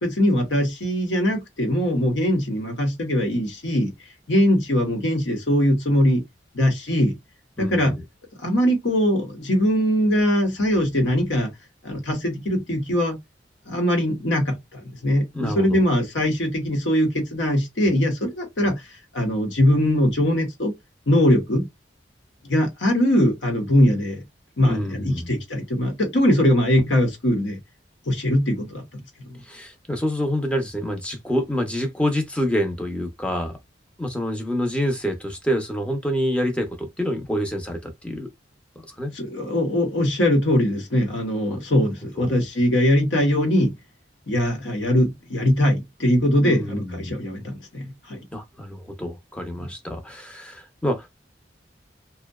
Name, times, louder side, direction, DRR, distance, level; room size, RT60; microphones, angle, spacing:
voice 1, 0.0-3.9 4.3-6.2 6.5-7.2 7.6-8.0 8.4-11.5 11.8-13.2 13.7-18.8 19.1-20.7 21.1-21.7 22.4-24.2 24.6-27.6 28.1-29.0 29.3-29.4 39.1-43.7 44.3-48.2 49.6-49.7, equal, 85° left, 1.0 m, -21 dB
voice 2, 7.6-8.0 15.3-15.8 24.7-25.3 29.4-33.6 34.0-38.3 38.9-39.1 42.2-42.4 46.4-47.1 48.3-51.1, equal, 5° left, 0.6 m, -27 dB
2.6 x 2.1 x 2.2 m
head